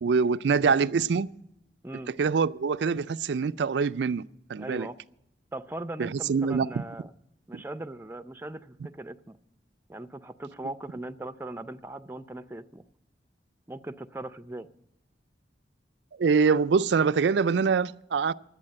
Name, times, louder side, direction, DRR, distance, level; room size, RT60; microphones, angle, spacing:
voice 1, 0.0-1.3 2.1-4.2 4.5-4.9 6.0-6.8 7.5-7.6 16.2-18.3, right 5 dB, 80° right, 0.4 m, -24 dB
voice 2, 4.6-5.0 5.5-7.1 7.5-9.4 9.9-12.8 13.7-14.7, right 1 dB, 10° right, 0.4 m, -39 dB
12.0 x 8.6 x 8.6 m
head